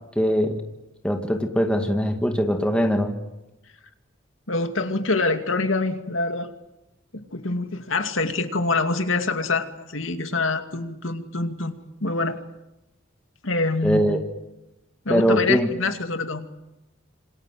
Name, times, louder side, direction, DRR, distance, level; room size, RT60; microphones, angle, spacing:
voice 1, 0.2-0.6 1.0-3.1 13.8-14.2 15.1-15.7, equal, 5° left, 4 dB, 2.2 m, -21 dB
voice 2, 4.5-6.5 7.1-12.4 13.4-14.1 15.0-16.5, left 3 dB, 70° left, 7 dB, 2.6 m, -25 dB
27.5 x 26.0 x 7.8 m, 0.97 s
head